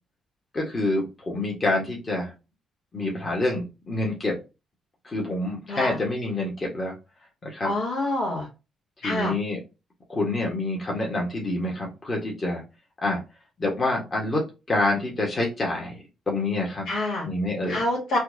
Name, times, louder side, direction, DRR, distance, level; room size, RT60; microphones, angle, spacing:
voice 1, 0.5-2.3 2.9-4.4 5.0-6.9 7.4-7.7 9.0-9.6 10.1-12.6 13.0-13.2 13.6-16.0 16.3-16.9 17.2-17.8, left 2 dB, 35° left, -2 dB, 1.4 m, -27 dB
voice 2, 7.6-8.5 9.0-9.3 16.9-17.3 17.7-18.2, left 1 dB, 80° left, -2 dB, 1.7 m, -26 dB
4.4 x 2.4 x 2.7 m, 0.28 s
cardioid pair, 90°, 0 cm